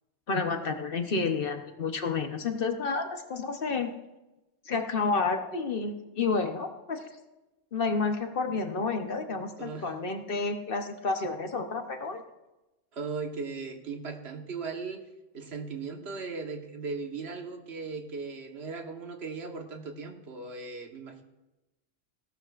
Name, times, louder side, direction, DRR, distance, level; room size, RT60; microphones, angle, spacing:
voice 1, 0.3-3.9 4.7-7.1 7.7-12.2, left 4 dB, 50° left, 6 dB, 1.1 m, -30 dB
voice 2, 9.6-9.9 12.9-15.0 15.3-21.2, right 4 dB, 60° right, 4 dB, 1.5 m, -38 dB
17.0 x 12.5 x 2.5 m, 1.0 s
omnidirectional pair, 1.3 m